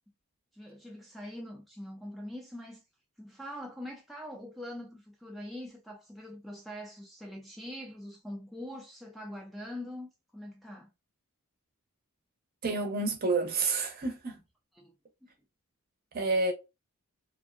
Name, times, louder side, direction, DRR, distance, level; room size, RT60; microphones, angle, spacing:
voice 1, 0.5-2.8 3.2-10.9 14.7-14.9 15.2-15.3, left 1 dB, ahead, 0.3 m, -43 dB
voice 2, 12.6-14.4 16.1-16.5, right 3 dB, 45° right, 0.6 m, -29 dB
2.6 x 2.1 x 2.3 m
head